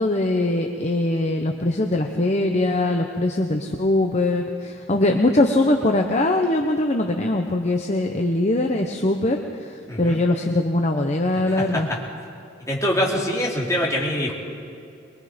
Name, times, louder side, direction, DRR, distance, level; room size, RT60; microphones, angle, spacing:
voice 1, 0.0-11.9, left 2 dB, 35° left, 3 dB, 0.9 m, -22 dB
voice 2, 9.9-10.2 11.3-11.8 12.7-14.3, equal, 15° left, -3 dB, 3.2 m, -24 dB
23.5 x 22.0 x 5.2 m, 2.5 s
head